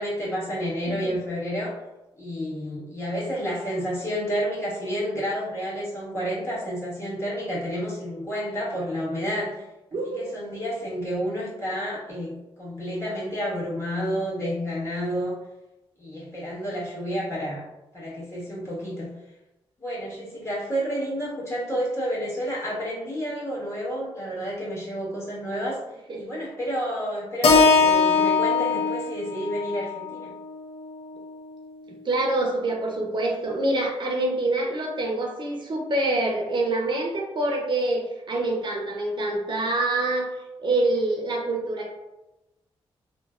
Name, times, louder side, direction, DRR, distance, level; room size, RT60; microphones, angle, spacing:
voice 1, 0.0-1.8 2.2-9.6 10.0-15.4 16.0-17.6 17.9-19.1 19.8-25.8 26.1-30.3, equal, 25° left, -8 dB, 1.4 m, -30 dB
voice 2, 9.9-10.2 26.1-26.2 32.0-41.9, right 2 dB, 50° right, 0 dB, 0.5 m, -26 dB
Keyboard (musical), 27.4-31.7, left 5 dB, 70° left, 0.5 m, -22 dB
3.1 x 2.1 x 2.3 m, 0.98 s
cardioid pair, 75°, 10 cm